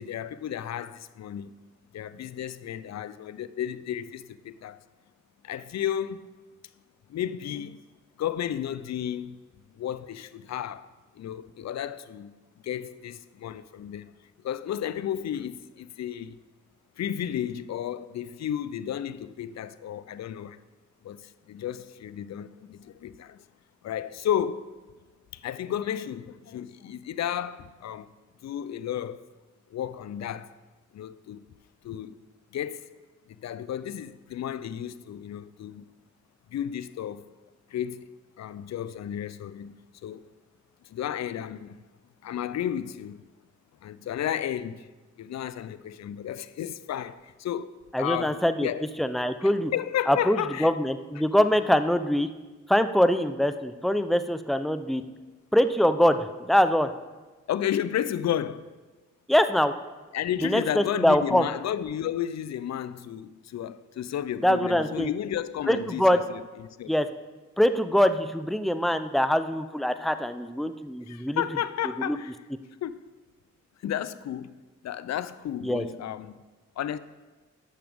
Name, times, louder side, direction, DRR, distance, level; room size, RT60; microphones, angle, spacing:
voice 1, 0.0-1.5 1.9-4.8 5.4-6.3 7.1-7.8 8.2-9.4 9.8-10.9 11.2-12.3 12.6-14.1 14.4-16.4 17.0-20.6 21.0-23.4 23.8-24.7 25.3-28.1 28.4-29.2 29.7-30.5 30.9-31.4 31.8-32.2 32.5-32.9 33.3-35.8 36.5-37.2 37.7-38.0 38.4-40.3 40.8-41.8 42.2-43.2 43.8-44.9 45.2-47.7 48.0-48.9 49.4-50.7 57.5-58.7 60.1-66.9 71.1-72.3 72.8-73.0 73.8-74.6 74.8-76.4 76.8-77.0, left 10 dB, 60° left, 0.5 m, -33 dB
voice 2, 47.9-48.7 49.0-49.7 50.1-52.3 52.7-55.0 55.5-56.9 59.3-59.7 60.4-61.5 64.4-65.1 65.7-66.2 66.9-67.1 67.6-71.4 72.0-72.2 75.6-75.8, equal, ahead, 0.6 m, -23 dB
11.0 x 6.7 x 3.6 m
supercardioid pair, 45°, 30 cm